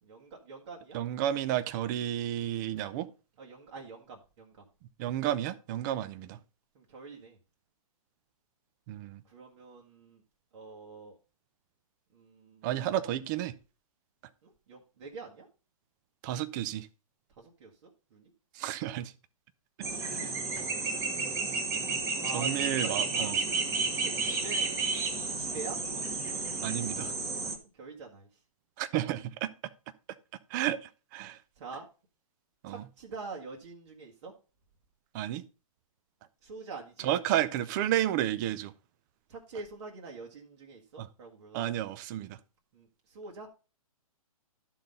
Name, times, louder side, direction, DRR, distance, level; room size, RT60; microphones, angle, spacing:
voice 1, 0.0-1.0 3.4-4.7 6.7-7.4 9.2-10.2 10.5-11.2 12.1-12.7 14.4-15.5 17.4-18.3 22.2-23.3 24.0-24.7 25.2-25.8 27.7-28.3 31.6-31.8 32.7-34.3 36.4-37.1 39.3-41.6 42.7-43.5, right 4 dB, 50° right, 1.6 m, -45 dB
voice 2, 0.9-3.1 5.0-6.4 8.9-9.2 12.6-13.5 16.2-16.9 18.5-19.1 20.0-20.3 22.3-23.4 26.6-27.1 28.8-29.5 30.5-31.4 32.6-32.8 35.1-35.4 37.0-38.7 41.0-41.1 41.5-42.4, right 12 dB, 30° right, 0.6 m, -31 dB
sound 1, 19.8-27.6, right 4 dB, 15° right, 1.3 m, -32 dB
12.0 x 4.0 x 5.3 m
hypercardioid pair, 140°, 19 cm